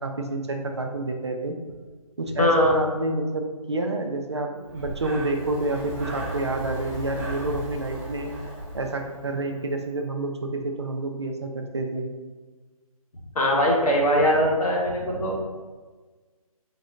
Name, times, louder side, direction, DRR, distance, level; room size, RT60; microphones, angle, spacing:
voice 1, 0.0-1.5 2.2-8.3 8.7-12.1, right 2 dB, 50° right, 4 dB, 0.4 m, -28 dB
voice 2, 2.4-2.8 13.3-15.3, equal, 75° left, -2 dB, 1.1 m, -21 dB
Breathing, 4.6-9.6, equal, 25° right, 1.1 m, -35 dB
4.1 x 2.1 x 3.6 m, 1.3 s
hypercardioid pair, 180°, 19 cm